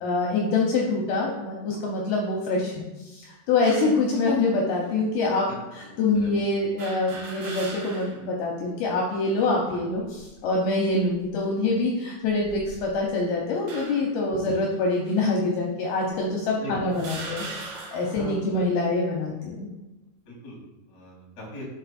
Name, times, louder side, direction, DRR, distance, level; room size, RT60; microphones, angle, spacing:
voice 1, 0.0-19.7, left 3 dB, 75° left, -1 dB, 2.3 m, -25 dB
sound 1, 3.6-4.0 4.8-4.9 6.8-8.2 8.7-8.8 9.9-10.4 11.0-11.3 12.2-13.1 13.7-14.2 15.1-15.2 16.1-16.2 16.9-18.2, right 3 dB, 85° right, 1.6 m, -39 dB
voice 2, 20.2-20.6 20.9-21.7, left 1 dB, 40° left, -4 dB, 1.6 m, -39 dB
5.7 x 5.2 x 4.2 m, 1.1 s
omnidirectional pair, 5.0 m